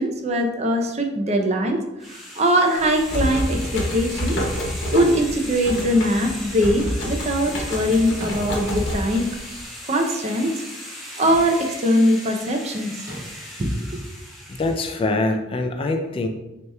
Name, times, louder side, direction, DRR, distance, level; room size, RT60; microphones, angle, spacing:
voice 1, 0.0-1.8 2.1-3.6 3.9-4.4 4.9-9.2 9.9-10.5 11.2-12.9 13.6-13.9, equal, 35° right, 3 dB, 0.5 m, -21 dB
sound 1, 2.0-15.1, equal, ahead, 0.8 m, -38 dB
sound 2, 2.8-9.6, equal, 90° left, 1.0 m, -28 dB
sound 3, 8.1-8.9 11.1-11.8 13.0-13.5, equal, 15° right, 1.4 m, -37 dB
voice 2, 14.5-16.3, left 2 dB, 30° left, 5 dB, 0.3 m, -24 dB
6.4 x 2.9 x 2.2 m, 0.98 s
head